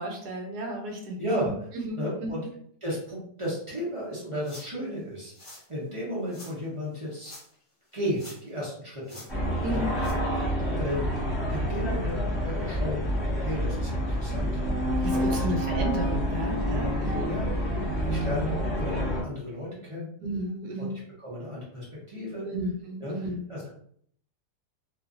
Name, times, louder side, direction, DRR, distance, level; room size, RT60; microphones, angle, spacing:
voice 1, 0.0-2.5 9.6-9.9 15.0-17.3 17.7-17.9 20.2-20.9 22.4-23.4, right 1 dB, 75° right, 1 dB, 1.1 m, -33 dB
voice 2, 1.2-1.5 1.9-2.4 2.8-7.3 7.9-9.2 9.7-9.8 10.7-11.2 11.5-13.0 13.4-15.4 17.2-17.5 18.0-20.1 20.8-22.5 23.0-23.1 23.5-23.7, equal, 40° right, -7 dB, 0.4 m, -34 dB
sound 1, 4.4-4.8 5.3-5.7 6.3-6.5 7.1-7.6 7.9-8.6 9.0-9.3 10.0-10.1, left 1 dB, 40° left, 0.4 m, -47 dB
sound 2, 9.3-19.2, equal, 20° left, 1.0 m, -28 dB
2.7 x 2.4 x 2.4 m, 0.64 s
omnidirectional pair, 1.7 m